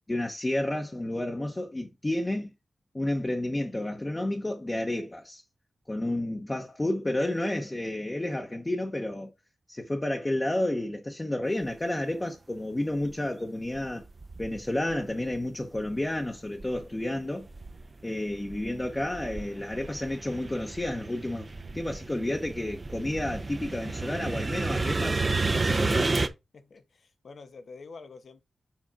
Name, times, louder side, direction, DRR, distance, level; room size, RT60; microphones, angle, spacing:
voice 1, 0.1-2.5 2.9-5.4 5.9-9.3 9.7-14.0 14.4-17.5 18.0-25.2 25.5-26.1, left 1 dB, 20° left, 1.1 m, -31 dB
sound 1, 13.0-13.1 13.7-15.4 15.8-17.0 17.4-26.3, right 3 dB, 40° right, 0.9 m, -32 dB
voice 2, 26.5-28.4, left 4 dB, 70° left, 1.3 m, -47 dB
7.5 x 4.3 x 3.7 m
wide cardioid pair, 85°, 0 cm